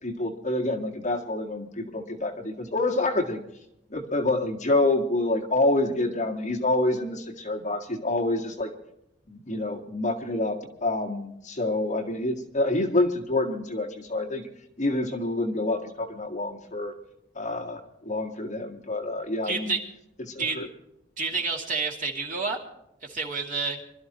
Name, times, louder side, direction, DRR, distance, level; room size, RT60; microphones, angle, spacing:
voice 1, 0.0-3.4 3.9-8.7 9.3-14.4 14.8-16.9 17.3-19.8 20.3-20.7, left 2 dB, 40° left, 1 dB, 1.8 m, -27 dB
voice 2, 19.4-19.8 20.4-20.6 21.2-22.6 23.0-23.8, right 4 dB, 45° right, 1 dB, 2.6 m, -29 dB
25.5 x 13.0 x 3.0 m, 0.82 s
head